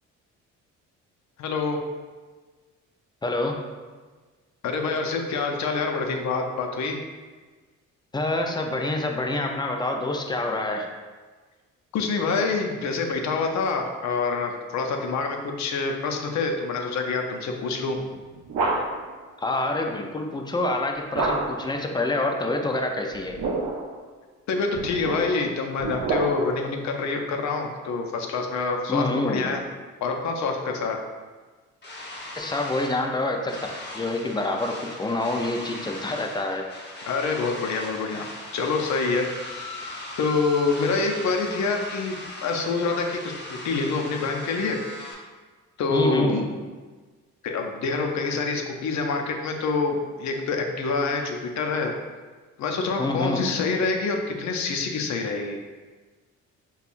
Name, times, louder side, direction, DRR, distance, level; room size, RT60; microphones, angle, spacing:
voice 1, 1.4-1.8 4.6-7.0 11.9-18.0 24.5-29.6 30.0-31.0 37.1-38.3 38.5-39.3 40.2-44.8 45.8-46.5 47.4-51.9 52.6-55.6, left 4 dB, 65° left, 3 dB, 0.6 m, -26 dB
voice 2, 3.2-3.6 8.1-10.9 19.4-23.4 28.9-29.5 32.4-33.6 33.9-36.6 45.9-46.4 53.0-53.4, left 2 dB, 15° left, 2 dB, 0.4 m, -26 dB
sound 1, 18.0-19.2 21.1-21.8 23.1-24.0 24.7-26.7, right 3 dB, 65° right, 0.6 m, -28 dB
sound 2, 31.8-45.1, left 1 dB, 35° left, 0.9 m, -39 dB
5.2 x 2.3 x 2.5 m, 1.4 s
cardioid pair, 90°, 30 cm